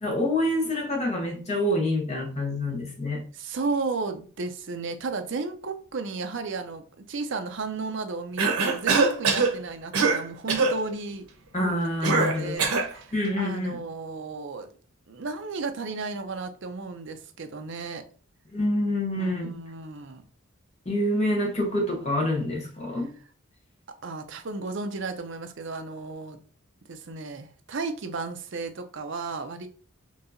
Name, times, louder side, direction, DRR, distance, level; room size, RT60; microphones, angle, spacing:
voice 1, 0.0-3.2 11.5-12.6 13.1-13.8 18.5-19.6 20.9-23.1, left 1 dB, 30° left, -1 dB, 0.9 m, -27 dB
voice 2, 3.3-11.3 12.2-14.7 15.1-18.0 19.1-20.2 24.0-26.4 26.9-29.7, right 3 dB, 55° right, 7 dB, 0.5 m, -34 dB
Cough, 8.4-9.5 9.9-10.2 10.5-10.8 12.0-12.9, right 4 dB, 85° right, 0.9 m, -22 dB
4.5 x 2.8 x 2.6 m, 0.41 s
head